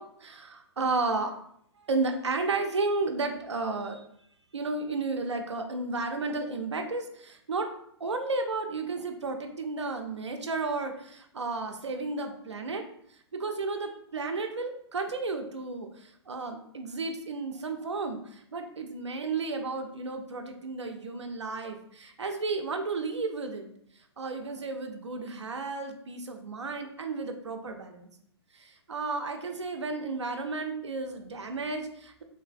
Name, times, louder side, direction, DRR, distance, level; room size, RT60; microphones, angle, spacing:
voice 1, 0.0-1.4 1.8-4.1 4.5-7.7 8.0-12.9 13.3-23.7 24.2-28.1 28.5-32.2, right 3 dB, 90° right, 5 dB, 0.4 m, -33 dB
3.1 x 2.3 x 2.4 m, 0.68 s
figure-of-eight pair, 120°, 14 cm